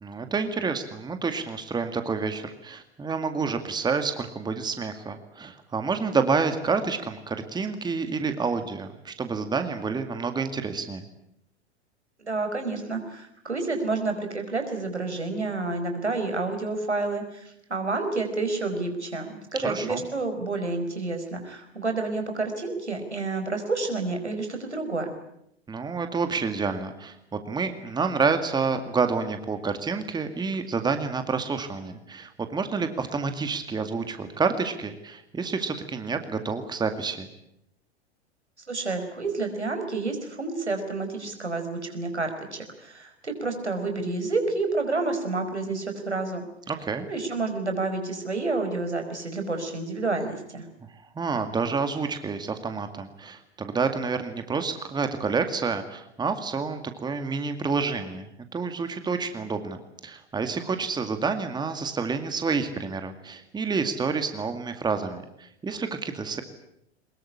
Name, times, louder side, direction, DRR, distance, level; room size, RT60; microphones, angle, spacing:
voice 1, 0.0-11.0 19.6-20.0 25.7-27.2 27.5-37.3 46.7-47.1 51.2-66.4, right 4 dB, 10° right, 8 dB, 2.1 m, -29 dB
voice 2, 12.2-17.4 17.7-25.1 38.7-46.4 47.0-50.6, right 3 dB, 85° right, 5 dB, 4.9 m, -29 dB
23.0 x 21.5 x 9.9 m, 0.78 s
figure-of-eight pair, 95°, 33 cm